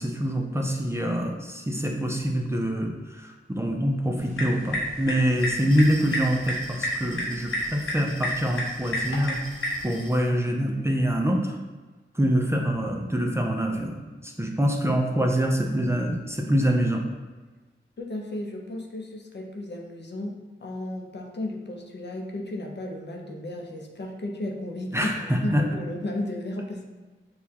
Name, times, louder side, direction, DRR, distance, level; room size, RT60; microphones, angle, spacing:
voice 1, 0.0-9.4 9.8-11.6 12.1-14.0 14.2-17.0 24.9-25.6, equal, 15° right, 1 dB, 0.5 m, -25 dB
sound 1, 4.2-9.8, left 1 dB, 90° left, 0.9 m, -31 dB
Glass, 5.2-10.2, left 1 dB, 25° left, 1.3 m, -46 dB
voice 2, 18.0-26.8, left 1 dB, 55° left, 0 dB, 0.7 m, -34 dB
6.5 x 2.4 x 2.8 m, 1.3 s
wide cardioid pair, 55°, 20 cm